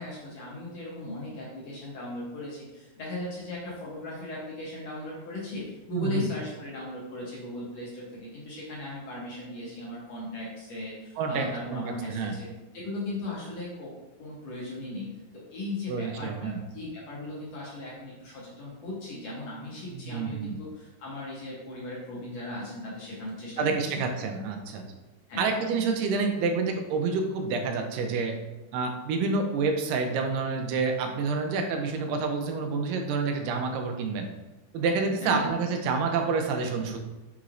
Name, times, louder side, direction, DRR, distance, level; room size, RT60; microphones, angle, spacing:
voice 1, 0.0-12.5 12.7-13.9 14.2-15.1 15.5-23.6 23.9-24.0 25.3-25.5 35.2-35.5, left 2 dB, 70° left, -5 dB, 1.7 m, -37 dB
voice 2, 5.9-6.3 11.2-12.3 15.9-16.6 19.9-20.5 23.6-24.8 25.4-28.4 28.7-34.3 34.7-37.0, right 4 dB, 85° right, 4 dB, 2.2 m, -28 dB
5.7 x 3.0 x 2.5 m, 1.0 s
omnidirectional pair, 3.9 m